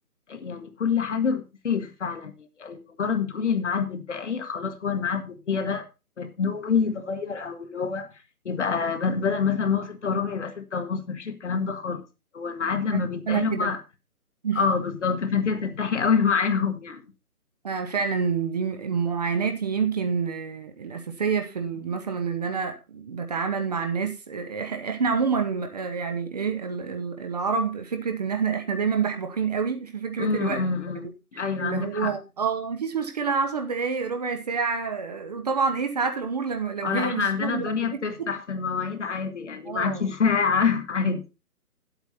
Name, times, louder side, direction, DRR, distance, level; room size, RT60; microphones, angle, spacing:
voice 1, 0.3-5.9 6.2-8.1 8.4-12.0 12.3-13.8 14.5-17.0 30.2-31.0 31.3-32.2 36.8-41.2, left 5 dB, 50° left, 1.5 m, -26 dB
voice 2, 12.9-13.7 14.4-14.6 17.6-30.6 31.3-38.3 39.7-40.1, right 5 dB, 25° right, 1.0 m, -28 dB
10.5 x 8.2 x 4.1 m
figure-of-eight pair, 145°, 45 cm